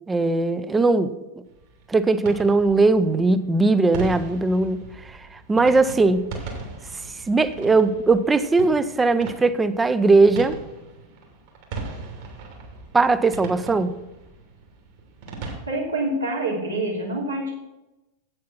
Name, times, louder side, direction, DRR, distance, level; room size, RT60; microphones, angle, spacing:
voice 1, 0.1-1.1 1.9-6.2 7.3-10.6 12.9-13.9, right 3 dB, 15° right, 13 dB, 0.6 m, -19 dB
sound 1, 1.5-15.6, right 3 dB, 50° right, 2.5 m, -39 dB
voice 2, 15.7-17.5, right 1 dB, 80° right, -3 dB, 2.8 m, -26 dB
8.4 x 7.7 x 5.9 m, 0.99 s
figure-of-eight pair, 90°, 0 cm